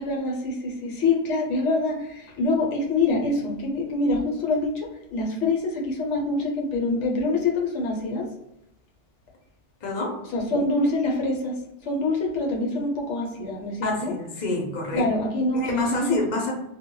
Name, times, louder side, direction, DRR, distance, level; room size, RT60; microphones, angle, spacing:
voice 1, 0.0-8.3 10.3-14.1 14.9-16.2, left 2 dB, 75° left, 0 dB, 0.9 m, -25 dB
voice 2, 9.8-10.1 13.8-15.0 15.5-16.5, left 2 dB, 45° left, 0 dB, 0.6 m, -27 dB
2.1 x 2.0 x 3.6 m, 0.83 s
omnidirectional pair, 1.3 m